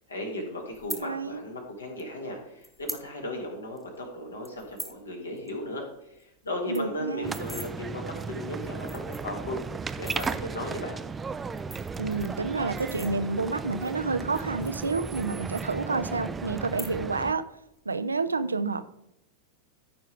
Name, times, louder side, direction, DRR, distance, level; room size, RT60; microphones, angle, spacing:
voice 1, 0.1-9.6 10.0-11.0, left 1 dB, 75° left, 1 dB, 2.4 m, -36 dB
sound 1, 0.7-1.0 2.0-2.1 2.6-3.1 3.4-3.5 3.8-4.0 4.4-5.0 5.4-5.5 5.8-5.9 6.2-6.3 6.5-7.7 8.4-8.5 8.8-9.4 9.9-10.4 11.4-13.5 14.2-15.3 15.6-16.2 16.6-17.2 17.5-17.9, equal, 5° left, 1.2 m, -41 dB
voice 2, 1.0-1.4 6.7-7.4 12.0-17.4 17.9-18.9, right 3 dB, 75° right, 13 dB, 0.5 m, -29 dB
sound 2, 7.2-17.3, right 5 dB, 15° right, 0.4 m, -35 dB
14.0 x 5.6 x 3.5 m, 0.83 s
figure-of-eight pair, 90°, 0 cm